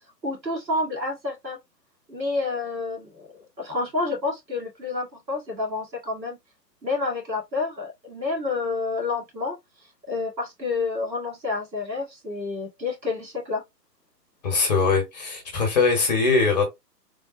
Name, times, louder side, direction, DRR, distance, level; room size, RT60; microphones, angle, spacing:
voice 1, 0.2-1.6 2.1-6.4 6.8-9.6 10.1-13.6, left 3 dB, 90° right, 1.6 m, -29 dB
voice 2, 14.4-16.7, left 4 dB, 25° left, 0.8 m, -21 dB
3.3 x 2.0 x 2.6 m
figure-of-eight pair, 130°, 50 cm